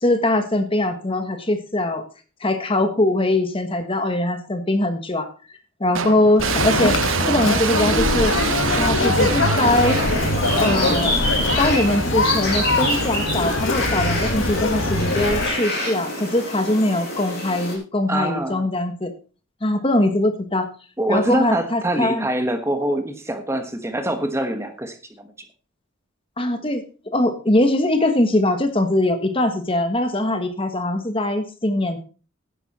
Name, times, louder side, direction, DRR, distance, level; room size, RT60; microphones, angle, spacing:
voice 1, 0.0-2.1 2.4-5.3 5.8-8.3 8.7-10.0 10.6-11.2 11.6-19.1 19.6-20.7 21.1-22.3 26.4-26.8 27.1-32.0, left 1 dB, 25° left, 8 dB, 1.4 m, -21 dB
sound 1, 6.0-17.2, right 6 dB, 70° right, 0.8 m, -28 dB
Conversation, 6.4-15.5, left 2 dB, 70° left, 1.7 m, -22 dB
sound 2, 9.6-17.7, left 1 dB, 50° left, 6.3 m, -27 dB
voice 2, 18.1-18.7 21.0-25.3, right 1 dB, 15° right, 7 dB, 1.2 m, -24 dB
11.0 x 10.5 x 4.2 m, 0.36 s
head